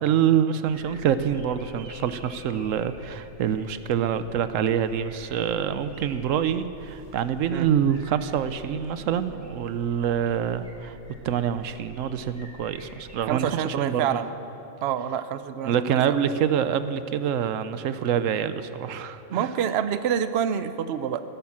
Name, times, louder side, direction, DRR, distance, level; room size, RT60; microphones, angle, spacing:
voice 1, 0.0-11.0 11.2-14.2 15.6-19.5, right 8 dB, 90° right, 12 dB, 1.0 m, -26 dB
sound 1, 0.7-13.3, equal, 20° right, 3.8 m, -48 dB
voice 2, 13.3-14.3 14.8-15.7 16.1-16.2 19.3-21.2, right 9 dB, 60° right, 11 dB, 0.8 m, -27 dB
15.0 x 11.0 x 7.3 m, 3.0 s
omnidirectional pair, 1.3 m